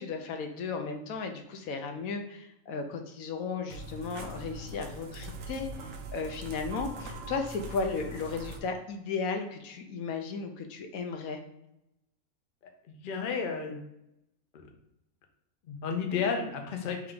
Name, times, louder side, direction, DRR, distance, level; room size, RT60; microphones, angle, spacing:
voice 1, 0.0-11.4, left 4 dB, 75° left, 5 dB, 1.0 m, -35 dB
sound 1, 3.7-8.6, right 2 dB, 65° right, 0.8 m, -42 dB
voice 2, 12.9-13.8 15.7-17.1, left 5 dB, 50° left, 4 dB, 0.6 m, -32 dB
3.5 x 3.3 x 3.7 m, 0.84 s
omnidirectional pair, 1.5 m